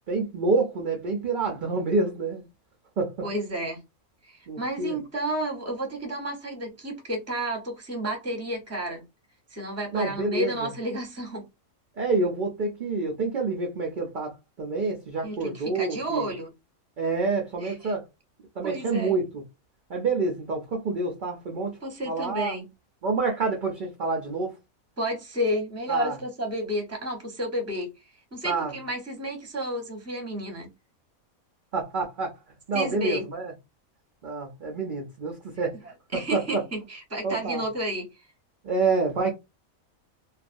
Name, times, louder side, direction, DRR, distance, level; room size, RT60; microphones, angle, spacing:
voice 1, 0.1-2.4 3.0-3.1 4.5-5.0 9.9-10.7 12.0-16.3 17.0-18.0 18.6-19.4 19.9-21.8 22.1-22.5 23.0-24.5 25.9-26.2 28.4-28.7 31.7-32.3 32.7-33.5 34.2-35.8 36.1-36.6 37.2-37.6 38.6-39.3, right 3 dB, 60° right, 0.5 m, -27 dB
voice 2, 3.2-3.8 4.2-9.0 9.5-11.5 15.2-16.5 17.6-17.9 18.6-19.1 21.8-22.7 25.0-27.9 28.3-30.7 32.7-33.3 36.1-38.2, equal, 15° right, 0.7 m, -31 dB
2.5 x 2.4 x 2.5 m
omnidirectional pair, 1.5 m